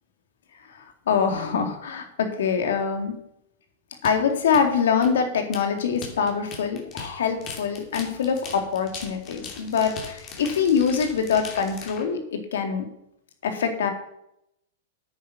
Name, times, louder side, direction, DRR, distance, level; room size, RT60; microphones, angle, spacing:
voice 1, 0.7-3.1 4.0-12.9 13.4-13.9, left 6 dB, 80° left, 6 dB, 2.3 m, -24 dB
sound 1, 4.0-12.0, left 5 dB, 30° left, 2.9 m, -40 dB
9.3 x 9.3 x 6.0 m, 0.78 s
hypercardioid pair, 135°, 0 cm